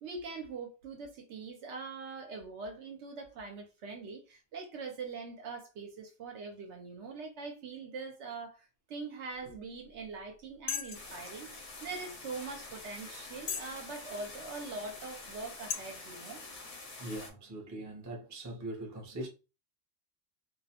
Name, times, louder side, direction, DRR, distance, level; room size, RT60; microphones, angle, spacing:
voice 1, 0.0-16.4, right 4 dB, 70° right, 0.9 m, -43 dB
sound 1, 9.8-10.0 10.7-11.1 11.8-11.9 12.5-12.6 13.4-13.8 14.3-14.4 15.2-15.3 15.7-15.8, left 8 dB, 80° left, 1.0 m, -36 dB
sound 2, 10.9-17.3, left 3 dB, 50° left, 0.7 m, -47 dB
voice 2, 17.0-19.3, right 1 dB, 20° right, 0.5 m, -41 dB
2.4 x 2.0 x 2.8 m
omnidirectional pair, 1.3 m